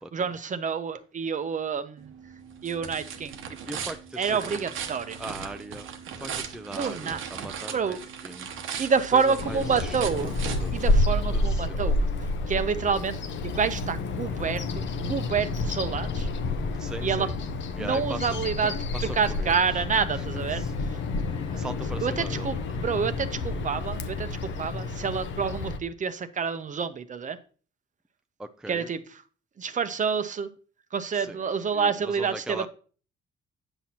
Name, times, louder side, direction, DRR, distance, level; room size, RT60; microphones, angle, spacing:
voice 1, 0.1-2.1 2.6-3.4 4.2-5.2 6.7-7.2 7.7-8.0 8.8-10.4 10.7-13.2 13.4-16.3 17.0-17.3 17.8-20.6 20.9-21.0 21.5-21.6 22.0-27.4 28.7-29.2 29.6-30.5 30.9-32.7, right 6 dB, 40° right, 11 dB, 0.7 m, -28 dB
sound 1, 2.0-11.4, right 7 dB, 85° right, 0.9 m, -38 dB
voice 2, 3.7-4.6 5.2-5.9 6.1-8.0 8.2-8.5 9.1-10.8 11.3-11.9 16.8-17.3 17.8-18.3 18.9-19.6 20.3-20.7 21.6-22.5 28.4-28.9 31.1-31.4 31.7-32.7, right 2 dB, 5° right, 7 dB, 0.4 m, -39 dB
Bird vocalization bird call bird song, 9.4-25.8, left 2 dB, 70° left, 0.8 m, -29 dB
8.8 x 6.0 x 2.8 m, 0.40 s
cardioid pair, 90°, 20 cm